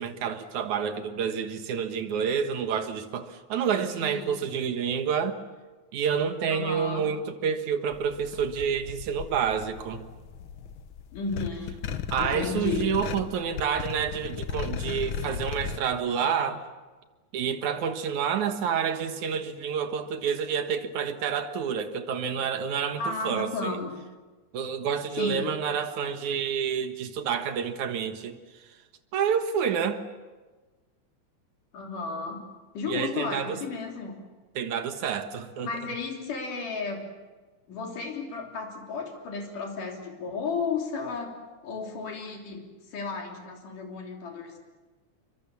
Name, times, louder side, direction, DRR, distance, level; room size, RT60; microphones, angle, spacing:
voice 1, 0.0-5.4 5.9-10.1 12.1-16.6 17.3-23.8 24.5-28.4 29.1-30.0 32.9-33.6 34.6-35.7, right 7 dB, 70° right, 8 dB, 2.8 m, -29 dB
voice 2, 3.9-4.5 6.5-7.1 11.1-11.8 12.2-13.0 23.0-23.9 25.2-25.6 31.7-32.5 32.7-34.2 35.6-37.1 37.7-41.3 41.6-44.6, left 4 dB, 90° left, 1 dB, 4.9 m, -33 dB
sound 1, 7.9-15.8, left 7 dB, 65° left, 1.3 m, -36 dB
29.0 x 23.5 x 7.1 m, 1.3 s
omnidirectional pair, 3.6 m